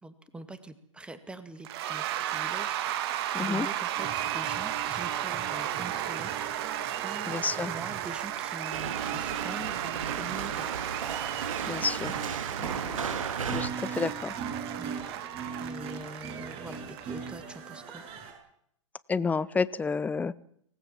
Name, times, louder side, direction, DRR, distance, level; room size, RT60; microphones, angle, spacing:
voice 1, 0.0-2.8 3.3-6.6 7.0-10.7 11.8-11.9 14.8-14.9 15.6-18.1, right 2 dB, 5° right, 11 dB, 2.1 m, -44 dB
Cheering / Applause / Crowd, 1.6-17.3, right 12 dB, 50° right, 2.3 m, -34 dB
voice 2, 3.3-3.7 7.3-7.7 11.6-12.1 12.6-13.0 13.5-14.3 19.1-20.4, left 4 dB, 10° left, 18 dB, 0.8 m, -30 dB
sound 1, 4.0-18.3, right 6 dB, 35° right, 7.7 m, -41 dB
sound 2, 8.7-13.7, right 6 dB, 85° right, 2.1 m, -35 dB
25.0 x 19.0 x 7.4 m, 0.69 s
hypercardioid pair, 125°, 17 cm